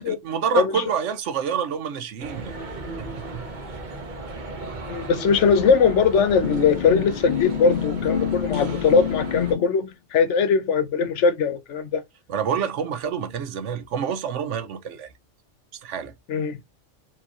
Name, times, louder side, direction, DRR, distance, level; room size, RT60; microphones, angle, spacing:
voice 1, 0.0-2.5 3.0-3.4 12.3-15.1 15.8-16.1, right 7 dB, 75° right, 1.1 m, -28 dB
voice 2, 0.5-0.8 4.9-12.0 16.3-16.6, left 5 dB, 75° left, 1.1 m, -20 dB
sound 1, 2.2-9.5, right 3 dB, 40° right, 1.0 m, -36 dB
sound 2, 6.4-9.7, left 9 dB, 50° left, 0.6 m, -28 dB
4.6 x 3.0 x 2.9 m
omnidirectional pair, 1.2 m